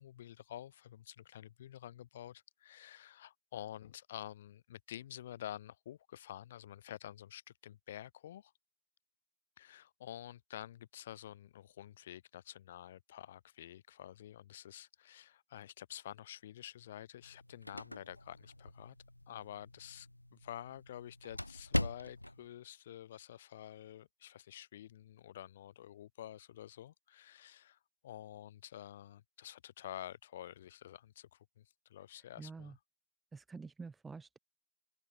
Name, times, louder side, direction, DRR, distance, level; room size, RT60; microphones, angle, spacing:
voice 1, 0.0-8.5 9.6-19.0 19.3-27.8 28.0-32.8, left 12 dB, 40° left, 4.8 m, -49 dB
sound 1, 17.2-22.5, left 1 dB, 85° left, 1.1 m, -41 dB
voice 2, 32.4-32.8 33.3-34.4, right 4 dB, 5° right, 0.8 m, -48 dB
open air
figure-of-eight pair, 130°, 0 cm